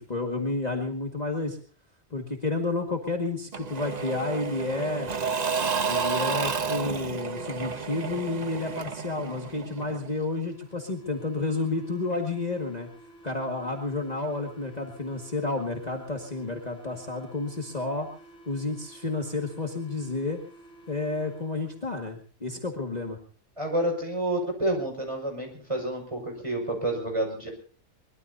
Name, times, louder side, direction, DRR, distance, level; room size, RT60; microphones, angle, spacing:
voice 1, 0.0-1.6 2.1-5.1 5.9-12.9 13.2-18.1 18.5-20.4 20.9-23.2, left 3 dB, 30° left, 1 dB, 1.9 m, -31 dB
Engine / Mechanisms / Drill, 3.5-10.2, right 5 dB, 35° right, 0.8 m, -31 dB
sound 1, 9.9-22.0, right 1 dB, 5° left, 8.1 m, -52 dB
voice 2, 23.6-27.5, right 1 dB, 20° right, 2 dB, 5.7 m, -29 dB
23.5 x 22.0 x 2.7 m, 0.41 s
omnidirectional pair, 1.5 m